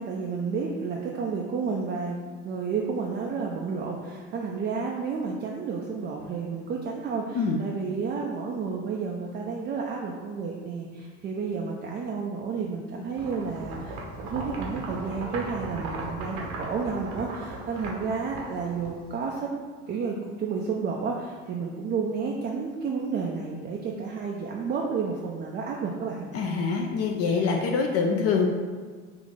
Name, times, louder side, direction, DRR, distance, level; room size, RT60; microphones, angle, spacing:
voice 1, 0.0-2.2 2.4-19.5 19.9-26.3, right 5 dB, 25° right, -1 dB, 0.4 m, -31 dB
sound 1, 13.2-19.3, right 2 dB, 70° right, 0.9 m, -37 dB
voice 2, 26.3-28.5, left 5 dB, 40° left, 2 dB, 0.4 m, -25 dB
3.8 x 2.5 x 3.6 m, 1.5 s
hypercardioid pair, 75°, 37 cm